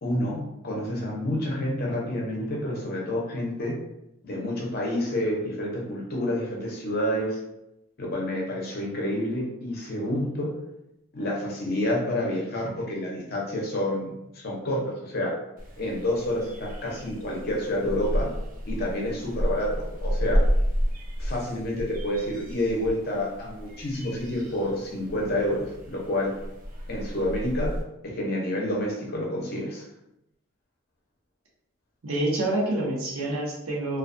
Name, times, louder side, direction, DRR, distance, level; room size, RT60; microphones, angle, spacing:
voice 1, 0.0-3.7 4.2-7.4 8.0-10.6 11.1-15.3 15.8-18.3 18.7-20.4 21.2-26.3 26.9-27.7 28.0-29.8, left 1 dB, 45° left, -2 dB, 0.6 m, -29 dB
sound 1, 15.6-27.8, equal, 35° right, 0.4 m, -31 dB
voice 2, 32.0-34.0, right 1 dB, 75° right, -4 dB, 0.7 m, -27 dB
2.3 x 2.2 x 2.5 m, 0.86 s
head